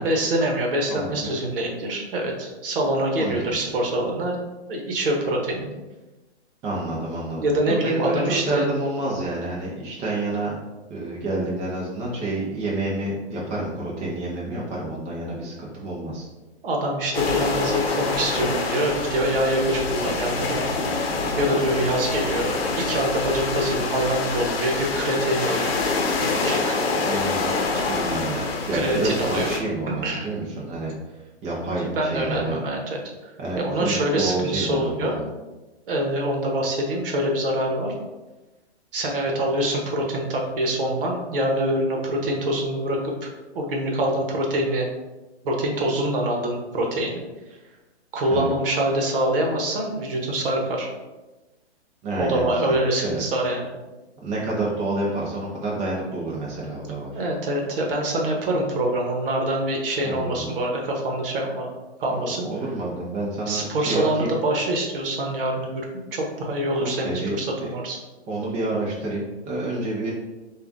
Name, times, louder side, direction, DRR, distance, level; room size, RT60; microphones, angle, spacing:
voice 1, 0.0-4.4 4.7-5.7 7.4-8.6 16.6-20.7 21.4-25.7 26.4-26.8 28.7-29.5 29.9-30.3 31.9-32.8 33.2-33.3 33.6-35.2 35.9-37.9 38.9-44.9 45.4-47.1 48.1-50.9 52.2-53.7 57.1-61.7 62.0-62.5 63.5-68.0, right 1 dB, 55° right, 0 dB, 1.1 m, -25 dB
voice 2, 0.9-1.4 3.2-3.7 6.6-10.6 10.9-16.3 26.9-30.9 31.4-32.6 33.4-35.3 48.3-48.5 52.0-52.7 53.0-53.2 54.2-57.2 60.0-60.5 62.1-64.4 66.8-67.7 68.3-70.1, right 2 dB, 20° right, -5 dB, 0.6 m, -29 dB
sound 1, 17.1-29.6, left 3 dB, 60° left, 0.8 m, -26 dB
6.5 x 2.5 x 2.6 m, 1.1 s
hypercardioid pair, 135°, 34 cm